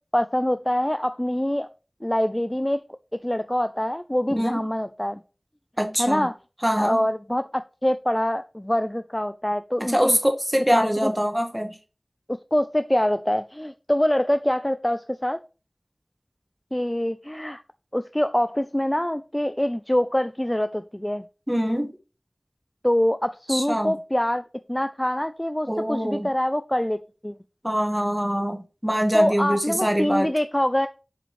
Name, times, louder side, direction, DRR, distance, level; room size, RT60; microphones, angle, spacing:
voice 1, 0.1-1.7 2.0-2.8 3.2-5.2 6.0-6.4 6.8-10.2 10.7-11.1 12.5-15.4 16.7-17.6 17.9-21.2 22.8-24.4 24.7-27.0 27.2-27.3 29.1-30.9, left 1 dB, 20° left, 0.4 m, -24 dB
voice 2, 5.8-6.3 6.6-7.1 9.8-11.8 21.5-21.9 23.5-23.9 25.7-26.3 27.6-30.3, equal, 10° right, 1.6 m, -24 dB
7.5 x 5.2 x 3.2 m
wide cardioid pair, 45°, 0 cm